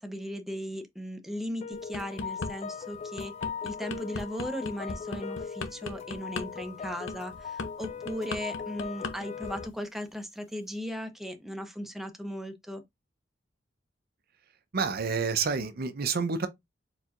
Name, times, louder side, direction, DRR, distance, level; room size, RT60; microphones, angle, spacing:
voice 1, 0.0-3.3 3.6-12.8, equal, ahead, 0.6 m, -37 dB
sound 1, 1.6-9.7, left 6 dB, 35° left, 0.3 m, -39 dB
sound 2, 1.7-2.5 2.9-9.1 9.4-9.7, left 3 dB, 80° left, 0.8 m, -37 dB
voice 2, 14.7-16.5, right 5 dB, 55° right, 0.6 m, -28 dB
4.4 x 3.8 x 2.4 m
head